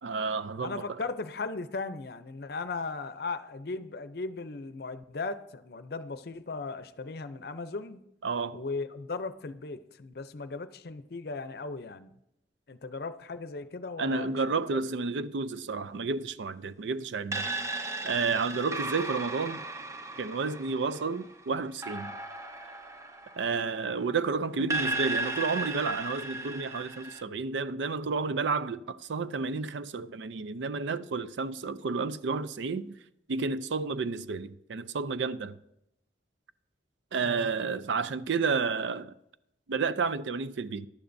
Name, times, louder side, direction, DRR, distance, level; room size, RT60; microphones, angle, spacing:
voice 1, 0.0-1.1 8.2-8.6 14.0-17.5 18.0-19.6 20.2-22.1 23.4-32.9 33.3-35.6 37.1-39.1 39.7-40.9, right 4 dB, 85° right, 0.5 m, -31 dB
voice 2, 0.6-8.0 8.5-12.1 12.7-14.4 14.7-14.8 37.2-37.8, left 3 dB, 60° left, 0.6 m, -37 dB
sound 1, 17.3-24.2 24.7-27.2, right 2 dB, 15° right, 0.6 m, -36 dB
13.5 x 11.5 x 2.6 m
head